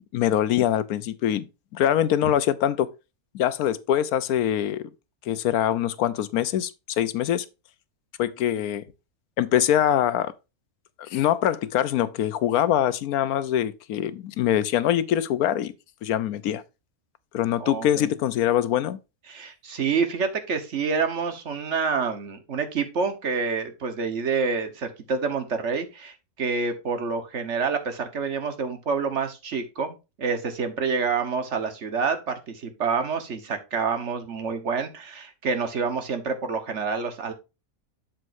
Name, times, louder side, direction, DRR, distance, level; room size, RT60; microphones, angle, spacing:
voice 1, 0.1-2.9 3.3-4.9 5.3-7.5 8.2-8.9 9.4-10.3 11.0-15.7 16.0-16.6 17.3-19.0, left 11 dB, 85° left, 1.2 m, -24 dB
voice 2, 17.6-18.1 19.3-37.3, right 5 dB, 55° right, 1.5 m, -28 dB
7.8 x 7.5 x 2.6 m
omnidirectional pair, 1.5 m